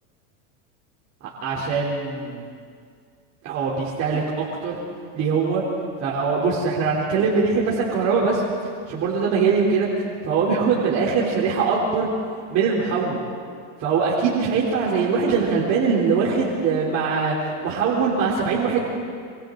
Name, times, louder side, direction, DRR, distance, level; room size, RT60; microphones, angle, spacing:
voice 1, 1.2-2.4 3.4-4.8 5.1-5.6 6.0-8.4 8.9-9.9 10.2-12.1 12.5-13.2 13.8-18.8, right 5 dB, 45° right, -5 dB, 3.6 m, -22 dB
26.5 x 25.5 x 3.9 m, 2.1 s
supercardioid pair, 130°, 38 cm